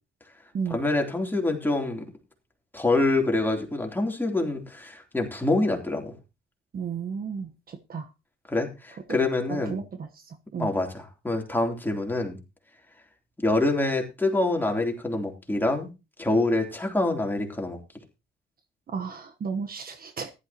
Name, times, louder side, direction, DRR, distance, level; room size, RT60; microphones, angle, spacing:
voice 1, 0.7-2.0 2.7-6.1 8.5-9.8 10.6-12.4 13.4-15.9 16.2-17.8, left 2 dB, 10° left, 1 dB, 3.4 m, -26 dB
voice 2, 6.7-8.1 9.5-10.1 10.5-10.7 18.9-20.3, right 6 dB, 50° right, 7 dB, 1.2 m, -33 dB
14.5 x 12.0 x 3.0 m, 0.27 s
cardioid pair, 90°, 20 cm